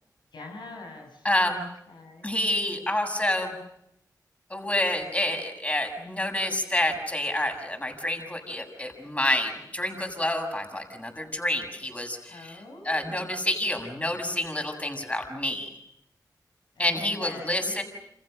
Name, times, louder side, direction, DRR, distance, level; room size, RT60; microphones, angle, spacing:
voice 1, 0.3-1.3 1.6-2.3 12.3-13.5 16.8-17.8, left 2 dB, 90° left, 2 dB, 6.6 m, -44 dB
voice 2, 1.2-1.6 2.2-3.5 4.5-15.7 16.8-17.8, left 1 dB, 20° left, 5 dB, 7.4 m, -28 dB
29.0 x 27.5 x 6.7 m, 0.79 s
cardioid pair, 50°, 7 cm